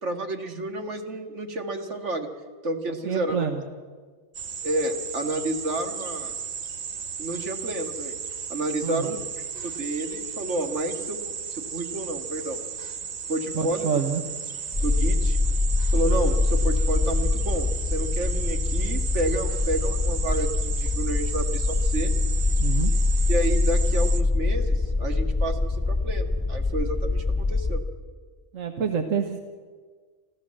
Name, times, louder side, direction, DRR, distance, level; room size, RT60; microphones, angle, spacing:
voice 1, 0.0-2.3 2.6-3.5 4.6-6.3 7.2-8.2 8.5-9.2 9.5-11.2 11.5-12.6 13.3-13.9 14.8-15.4 15.9-22.1 23.3-27.8, right 1 dB, 65° right, 5 dB, 2.2 m, -30 dB
voice 2, 2.9-3.6 8.8-9.1 13.5-14.2 22.6-22.9 28.5-29.4, right 6 dB, 80° right, 6 dB, 1.6 m, -27 dB
sound 1, 4.3-24.2, right 6 dB, 40° right, 0.7 m, -35 dB
sound 2, 14.7-27.8, left 3 dB, 5° left, 1.4 m, -24 dB
25.5 x 15.0 x 7.6 m, 1.5 s
omnidirectional pair, 1.3 m